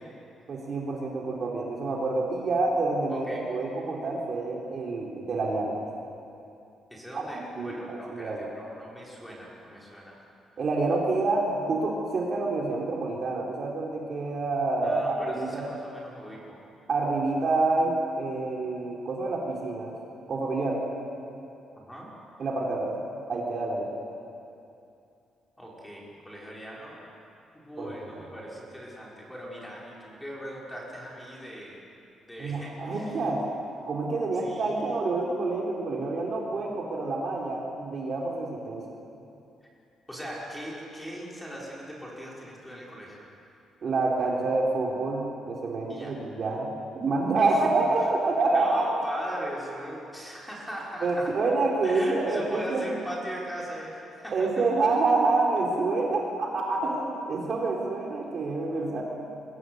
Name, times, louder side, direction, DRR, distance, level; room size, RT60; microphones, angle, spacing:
voice 1, 0.5-5.7 7.1-7.3 7.5-8.5 10.6-15.7 16.9-20.0 20.3-20.8 22.4-23.0 23.3-23.9 27.8-27.9 32.4-33.4 33.9-38.9 43.8-48.8 51.0-52.8 54.3-59.0, right 3 dB, 40° right, -2 dB, 3.8 m, -27 dB
voice 2, 3.1-3.5 6.9-10.2 14.8-16.6 21.8-22.1 25.6-27.0 27.5-31.8 32.3-33.2 34.3-34.8 40.1-43.2 45.9-46.1 47.3-47.6 48.5-51.3 51.8-54.7, equal, 5° left, -4 dB, 5.9 m, -40 dB
28.5 x 23.0 x 8.2 m, 2.7 s
cardioid pair, 160°, 0 cm